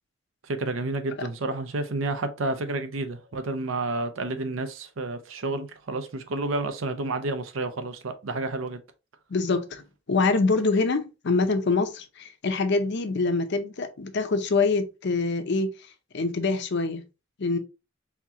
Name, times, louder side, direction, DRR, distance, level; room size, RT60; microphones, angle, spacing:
voice 1, 0.4-8.8, right 2 dB, 80° right, 0.7 m, -30 dB
voice 2, 9.3-15.7 16.1-17.0 17.4-17.6, left 3 dB, 60° left, 0.6 m, -25 dB
4.3 x 2.8 x 2.8 m
head